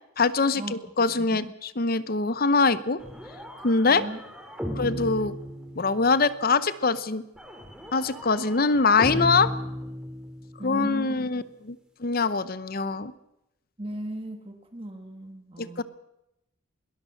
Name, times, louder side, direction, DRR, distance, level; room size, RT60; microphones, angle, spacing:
voice 1, 0.2-3.0 3.6-4.1 4.8-5.3 5.8-7.2 7.9-9.5 10.6-13.1 15.6-15.8, left 4 dB, 45° left, 15 dB, 0.8 m, -23 dB
voice 2, 1.1-1.5 3.9-4.2 4.6-5.0 10.6-11.4 13.8-15.8, right 1 dB, 25° right, 5 dB, 1.6 m, -37 dB
sound 1, 3.0-6.3 7.4-10.6, equal, 5° right, 2.9 m, -36 dB
22.0 x 19.0 x 6.5 m, 0.86 s
head